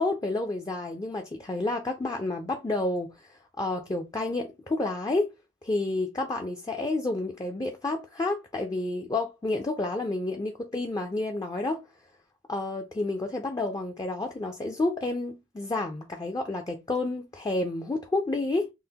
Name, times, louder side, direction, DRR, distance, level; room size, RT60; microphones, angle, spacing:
voice 1, 0.0-5.3 5.6-11.8 12.5-18.7, left 2 dB, 20° left, 0.4 m, -30 dB
5.5 x 2.0 x 2.8 m
head